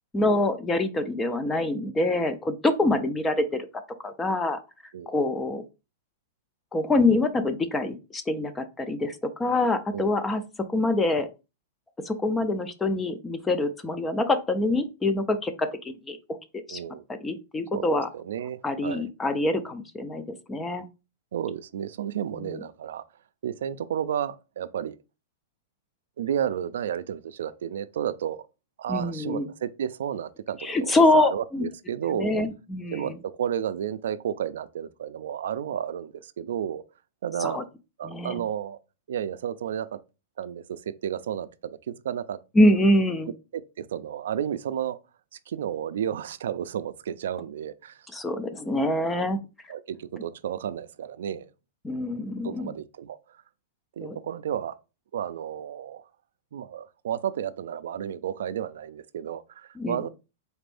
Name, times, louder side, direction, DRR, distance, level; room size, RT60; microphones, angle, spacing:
voice 1, 0.1-3.7 4.0-4.6 5.1-5.6 6.7-10.4 10.7-11.3 12.0-16.2 16.7-16.8 17.2-18.1 18.6-20.2 20.5-20.8 22.4-22.6 28.9-29.5 30.6-31.6 32.1-33.2 37.4-37.6 38.0-38.4 42.6-43.3 48.1-49.4 51.8-52.7 54.0-54.2 59.8-60.0, left 2 dB, 10° left, 0.3 m, -25 dB
voice 2, 16.7-17.0 17.7-19.1 21.3-23.1 23.4-25.0 26.2-28.4 28.8-32.4 32.9-36.8 37.2-37.7 38.0-38.8 39.1-40.0 40.4-42.4 43.5-45.0 45.5-48.0 49.7-51.5 52.4-53.2 54.0-54.8 55.1-56.0 56.5-60.1, right 9 dB, 75° right, 0.3 m, -32 dB
4.1 x 2.5 x 3.3 m
supercardioid pair, 170°, 0 cm